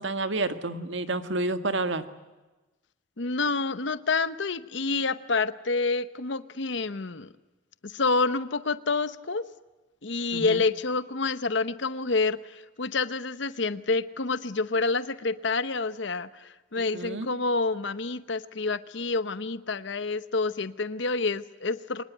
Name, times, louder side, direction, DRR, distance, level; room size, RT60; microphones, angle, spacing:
voice 1, 0.0-2.1 10.3-10.6 16.8-17.3, right 2 dB, 70° right, 9 dB, 1.7 m, -30 dB
voice 2, 3.2-7.3 7.8-9.4 10.0-22.0, left 3 dB, 65° left, 14 dB, 0.9 m, -28 dB
24.5 x 20.5 x 9.3 m, 1.2 s
head